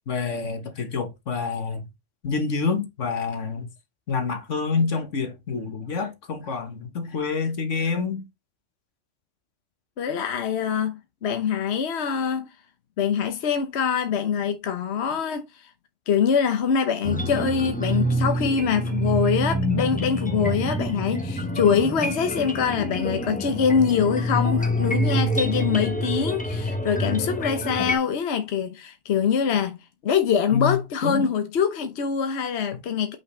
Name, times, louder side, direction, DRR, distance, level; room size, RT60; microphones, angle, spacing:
voice 1, 0.1-1.9 2.2-3.7 4.1-8.2 30.5-31.3, left 5 dB, 80° left, 1.7 m, -27 dB
voice 2, 10.0-12.5 13.0-15.7 16.1-29.8 30.0-33.2, left 7 dB, 65° left, 1.1 m, -24 dB
sound 1, 17.0-28.0, equal, 5° left, 1.0 m, -26 dB
6.3 x 5.6 x 3.2 m
omnidirectional pair, 1.2 m